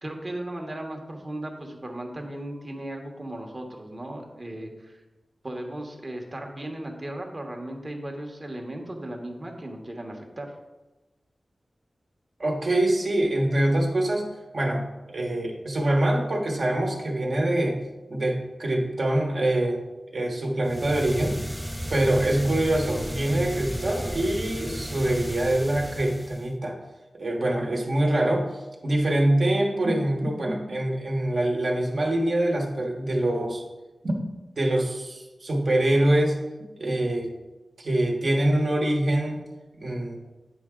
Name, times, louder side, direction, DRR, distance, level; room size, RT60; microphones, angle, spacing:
voice 1, 0.0-5.0 5.4-10.5, right 1 dB, 35° right, 2 dB, 1.1 m, -36 dB
voice 2, 12.4-14.3 14.5-17.8 18.1-19.8 20.1-21.4 21.9-26.7 27.2-33.6 34.0-34.3 34.6-36.4 36.8-37.3 37.8-39.4 39.8-40.2, right 1 dB, 55° right, 0 dB, 1.3 m, -24 dB
sound 1, 20.6-26.5, equal, ahead, 0.3 m, -34 dB
9.0 x 4.6 x 3.7 m, 1.1 s
wide cardioid pair, 95°, 0 cm